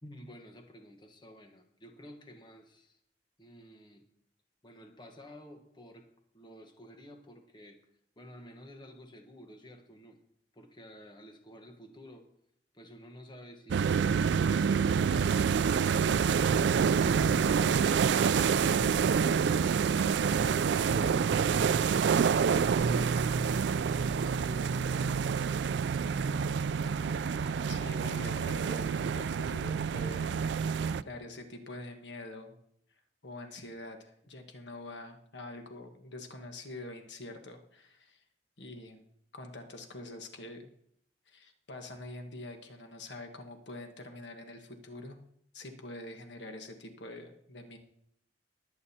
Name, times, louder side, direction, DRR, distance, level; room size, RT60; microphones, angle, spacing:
voice 1, 0.0-3.0 3.4-4.1 4.6-6.1 6.3-7.8 8.2-10.2 10.5-12.3 12.7-19.1 19.8-22.1 22.5-25.6, equal, 25° left, 4 dB, 1.2 m, -51 dB
sound 1, 13.7-31.0, right 6 dB, 70° right, 0.3 m, -27 dB
voice 2, 27.7-30.4 31.0-32.5 33.2-38.2 38.6-39.0 39.3-40.7 41.3-45.2 45.5-47.8, left 1 dB, 80° left, 5 dB, 1.3 m, -45 dB
20.5 x 8.7 x 2.8 m, 0.70 s
head